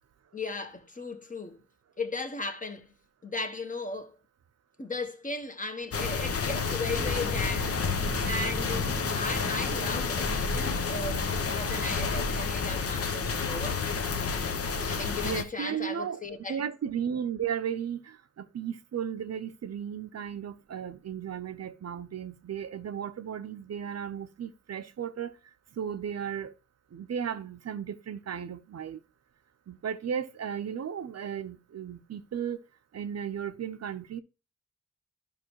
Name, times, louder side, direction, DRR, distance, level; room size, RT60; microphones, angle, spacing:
voice 1, 0.3-1.6 2.0-2.9 3.2-4.1 4.8-7.8 8.2-13.8 14.8-16.6, left 3 dB, 25° left, 1.3 m, -36 dB
sound 1, 5.9-15.4, left 5 dB, 50° left, 0.9 m, -30 dB
sound 2, 6.8-15.4, right 1 dB, 5° right, 0.4 m, -40 dB
voice 2, 15.2-16.2 16.5-25.3 25.8-26.5 26.9-29.0 29.7-32.6 32.9-34.2, right 8 dB, 55° right, 0.7 m, -35 dB
12.0 x 5.4 x 3.0 m
cardioid pair, 75°, 30 cm